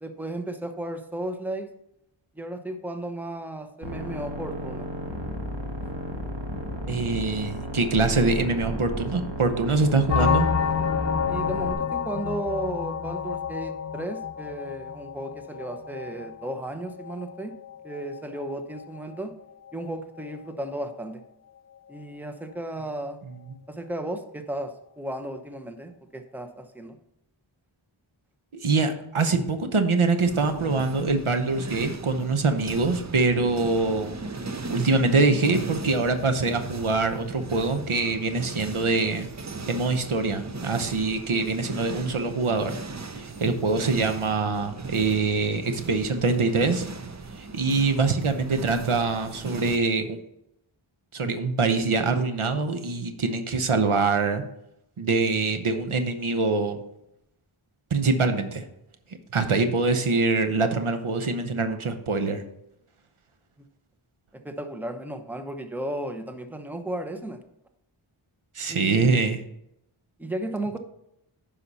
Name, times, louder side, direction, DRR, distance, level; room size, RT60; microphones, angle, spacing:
voice 1, 0.0-1.7 2.3-4.9 11.3-17.5 17.8-19.3 19.7-21.2 21.9-23.2 23.7-27.0 64.4-67.4 68.7-69.3 70.2-70.8, right 1 dB, 5° right, 7 dB, 0.9 m, -34 dB
sound 1, 3.8-11.7, equal, 55° right, 1.7 m, -33 dB
voice 2, 6.9-10.5 28.6-34.2 34.7-39.3 39.7-42.7 43.1-46.9 47.3-50.2 51.1-54.4 55.0-56.8 57.9-58.7 59.3-62.4 68.5-69.4, right 3 dB, 75° right, 8 dB, 1.0 m, -24 dB
sound 2, 10.1-19.4 19.7-19.9 20.2-20.4 20.6-20.8, left 7 dB, 35° left, 0.4 m, -30 dB
sound 3, 30.2-49.8, right 4 dB, 35° right, 0.7 m, -38 dB
10.0 x 5.7 x 4.1 m, 0.81 s
wide cardioid pair, 50°, 50 cm